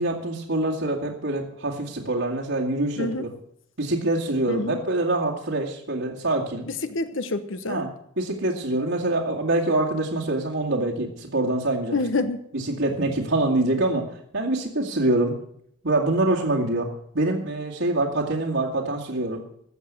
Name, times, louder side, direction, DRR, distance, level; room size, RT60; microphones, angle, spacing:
voice 1, 0.0-3.3 3.8-6.7 7.7-7.9 8.2-12.0 12.5-15.4 15.8-19.4, right 2 dB, 75° right, -4 dB, 2.3 m, -25 dB
voice 2, 4.5-4.8 6.8-7.8 11.9-12.4, left 3 dB, 70° left, 10 dB, 1.0 m, -27 dB
13.5 x 7.7 x 8.8 m, 0.67 s
head